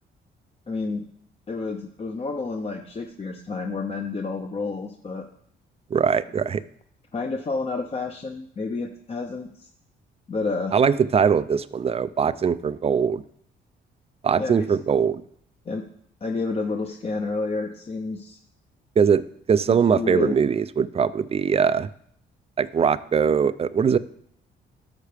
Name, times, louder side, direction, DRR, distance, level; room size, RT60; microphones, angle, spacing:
voice 1, 0.7-1.0 1.5-5.3 7.1-9.7 10.3-10.7 14.4-14.7 15.7-15.8 16.2-18.4 19.7-20.4, left 3 dB, 30° left, 3 dB, 0.7 m, -30 dB
voice 2, 5.9-6.6 10.7-13.2 14.2-15.2 19.0-19.2 19.5-21.9 22.6-24.0, right 6 dB, 30° right, 15 dB, 0.4 m, -21 dB
11.5 x 6.4 x 3.4 m, 0.66 s
cardioid pair, 90°, 20 cm